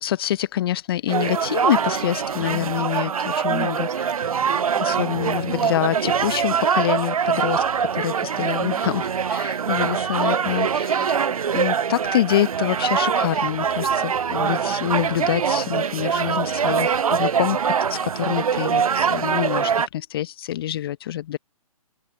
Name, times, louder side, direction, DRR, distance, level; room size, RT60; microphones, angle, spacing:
voice 1, 0.0-3.8 4.8-9.0 9.3-11.2 11.5-21.4, left 12 dB, 40° left, 0.9 m, -26 dB
sound 1, 1.1-19.9, right 7 dB, 70° right, 0.5 m, -23 dB
voice 2, 2.4-3.0 3.5-5.1 8.2-8.9 11.0-11.4 14.4-14.9, right 12 dB, 15° right, 2.6 m, -41 dB
figure-of-eight pair, 130°, 19 cm